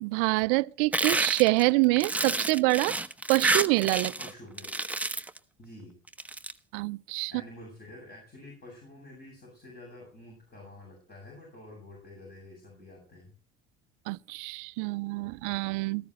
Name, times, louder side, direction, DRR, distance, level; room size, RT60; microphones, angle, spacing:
voice 1, 0.0-3.0 3.3-4.1 6.7-7.3 14.1-16.1, right 24 dB, 55° right, 0.5 m, -26 dB
sound 1, 0.9-4.3 4.6-5.4 6.1-6.5, right 2 dB, 5° right, 0.9 m, -29 dB
voice 2, 4.2-4.7 5.6-6.0 7.3-13.3, left 1 dB, 30° left, 7.8 m, -48 dB
18.5 x 14.5 x 3.2 m
figure-of-eight pair, 60°, 31 cm